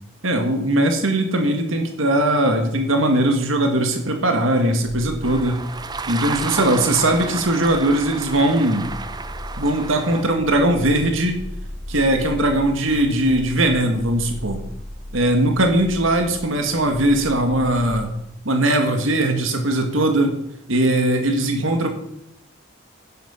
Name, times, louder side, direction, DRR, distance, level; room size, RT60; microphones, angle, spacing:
voice 1, 0.2-5.6 6.1-8.9 9.6-11.3 11.9-14.6 15.1-18.1 18.5-20.4 20.7-21.9, right 1 dB, 75° right, 4 dB, 1.9 m, -20 dB
sound 1, 4.8-18.1, equal, 10° left, 2.2 m, -37 dB
sound 2, 5.2-10.2, right 4 dB, 20° right, 0.6 m, -32 dB
10.5 x 10.5 x 5.8 m, 0.82 s
head